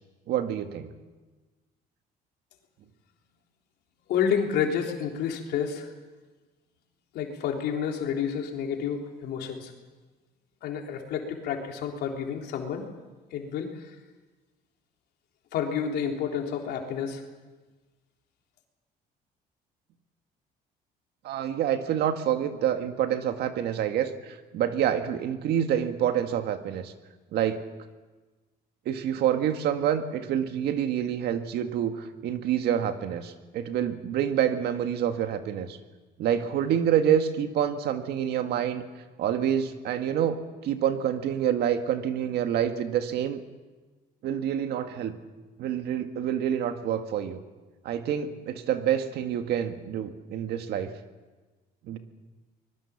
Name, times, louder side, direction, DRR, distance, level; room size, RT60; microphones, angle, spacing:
voice 1, 0.3-0.9 21.2-26.9 27.3-27.6 28.9-35.8 36.2-38.8 39.2-43.4 44.2-45.1 45.6-47.4 47.8-50.9 51.8-52.0, right 9 dB, 75° right, 7 dB, 1.9 m, -27 dB
voice 2, 4.1-5.9 7.1-9.7 10.6-12.9 13.3-13.9 15.5-17.2, left 7 dB, 75° left, 2 dB, 3.7 m, -29 dB
24.5 x 21.5 x 7.3 m, 1.3 s
cardioid pair, 110°, 17 cm